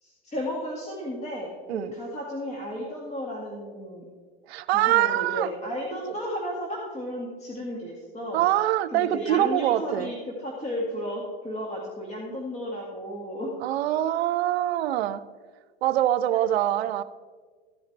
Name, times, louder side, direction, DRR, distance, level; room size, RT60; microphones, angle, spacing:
voice 1, 0.0-4.0 4.7-8.5 8.9-13.6 16.3-16.5, equal, 20° left, -3 dB, 2.0 m, -34 dB
voice 2, 4.5-5.5 6.1-6.2 8.3-10.1 13.6-15.2 15.8-17.0, right 13 dB, 80° right, 15 dB, 0.6 m, -24 dB
14.5 x 8.0 x 3.3 m, 1.5 s
hypercardioid pair, 100°, 31 cm